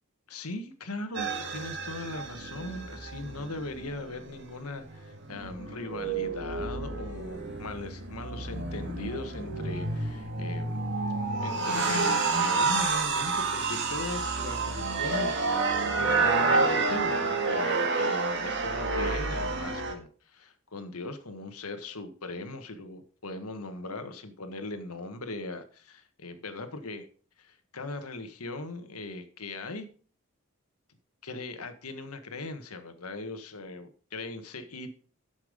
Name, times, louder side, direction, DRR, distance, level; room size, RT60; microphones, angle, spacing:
voice 1, 0.3-10.8 11.4-27.1 27.4-29.9 31.2-34.9, left 2 dB, 85° left, 8 dB, 1.5 m, -39 dB
sound 1, 1.1-4.4 4.9-19.9, right 3 dB, 55° right, 1.8 m, -29 dB
10.0 x 7.2 x 5.2 m, 0.42 s
head